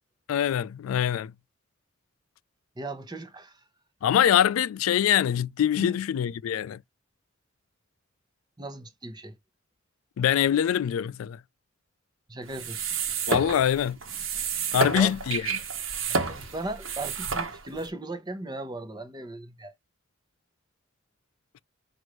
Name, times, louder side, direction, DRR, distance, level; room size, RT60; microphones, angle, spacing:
voice 1, 0.3-1.3 4.0-6.8 10.2-11.4 13.3-14.0 14.7-15.4, left 10 dB, 90° left, 0.3 m, -24 dB
voice 2, 2.8-3.6 5.8-6.0 8.6-9.4 12.3-12.8 14.9-15.2 16.0-19.7, right 2 dB, 20° right, 0.9 m, -37 dB
sound 1, 12.5-17.9, right 5 dB, 75° right, 1.1 m, -30 dB
6.1 x 2.6 x 3.0 m
head